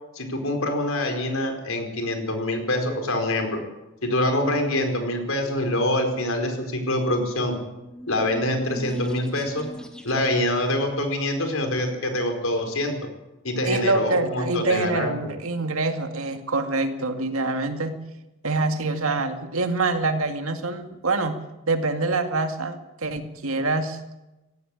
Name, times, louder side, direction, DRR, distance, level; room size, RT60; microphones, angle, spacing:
voice 1, 0.1-3.6 4.0-7.6 8.1-9.7 10.0-12.9 13.4-15.1, left 1 dB, 75° left, 5 dB, 4.7 m, -25 dB
sound 1, 7.6-10.5, equal, 5° left, 1.6 m, -39 dB
voice 2, 13.6-18.0 18.4-21.4 21.7-24.0, right 3 dB, 75° right, 6 dB, 2.2 m, -25 dB
18.0 x 15.0 x 9.9 m, 1.0 s
head